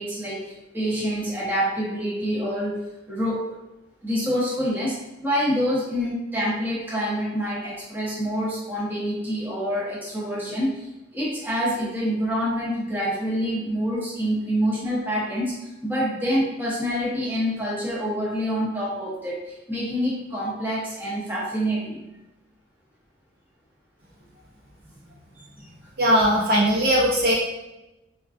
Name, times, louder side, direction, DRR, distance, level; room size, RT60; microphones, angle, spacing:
voice 1, 0.0-2.8 3.1-3.5 4.0-5.0 5.2-10.9 11.1-15.5 15.8-22.0, equal, 10° right, -7 dB, 0.8 m, -26 dB
voice 2, 26.0-27.3, equal, 50° right, -5 dB, 0.8 m, -19 dB
3.6 x 2.4 x 2.5 m, 0.96 s
head